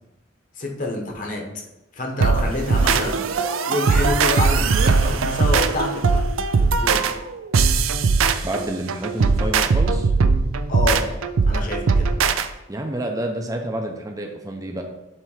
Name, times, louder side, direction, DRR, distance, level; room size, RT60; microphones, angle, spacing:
voice 1, 0.6-1.4 1.9-6.2 6.6-7.1 10.7-11.1 11.5-12.1, left 2 dB, 40° left, 1 dB, 1.1 m, -27 dB
sound 1, 2.2-12.5, right 4 dB, 85° right, 0.5 m, -20 dB
voice 2, 8.4-10.1 12.7-14.8, right 1 dB, 15° right, 3 dB, 0.6 m, -29 dB
7.5 x 3.5 x 4.9 m, 0.93 s
head